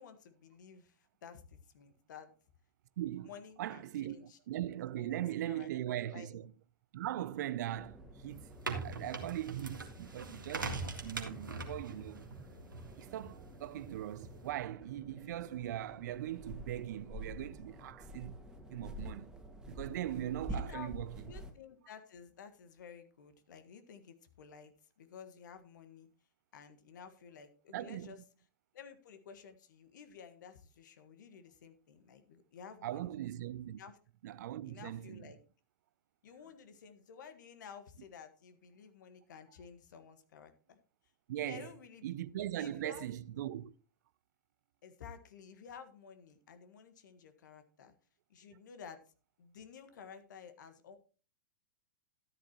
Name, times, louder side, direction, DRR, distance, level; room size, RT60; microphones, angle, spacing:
voice 1, 0.0-2.3 3.2-4.4 5.0-6.3 20.5-20.9 21.2-26.1 26.5-28.2 28.7-33.2 33.8-33.9 34.7-35.4 36.2-40.8 41.4-43.1 44.8-47.9 48.3-49.0 49.4-51.0, left 7 dB, 70° left, 1.6 m, -53 dB
voice 2, 3.0-3.3 3.6-6.5 6.9-12.3 13.0-18.4 18.7-19.3 19.7-21.2 27.7-28.1 32.8-33.8 34.2-35.3 41.3-41.7 42.0-43.7 48.5-48.6, right 12 dB, 60° right, 0.5 m, -40 dB
sound 1, 7.7-21.5, right 1 dB, 5° right, 2.0 m, -49 dB
sound 2, 8.3-14.5, right 3 dB, 90° right, 2.0 m, -43 dB
13.5 x 10.0 x 3.0 m
hypercardioid pair, 100°, 11 cm